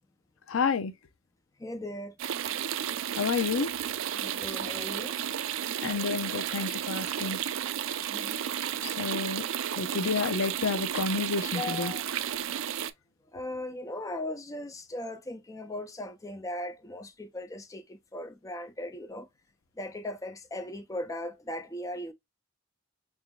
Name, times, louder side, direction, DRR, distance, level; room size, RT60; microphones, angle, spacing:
voice 1, 0.5-0.9 3.1-3.7 5.8-7.4 8.8-9.5 9.8-11.9, left 5 dB, 80° left, 0.5 m, -30 dB
voice 2, 1.6-2.1 4.1-5.2 8.1-8.6 11.5-12.0 13.3-19.3 19.8-22.1, left 1 dB, 15° left, 0.4 m, -38 dB
sound 1, 2.2-12.9, right 10 dB, 70° right, 0.4 m, -33 dB
4.1 x 3.4 x 2.2 m
head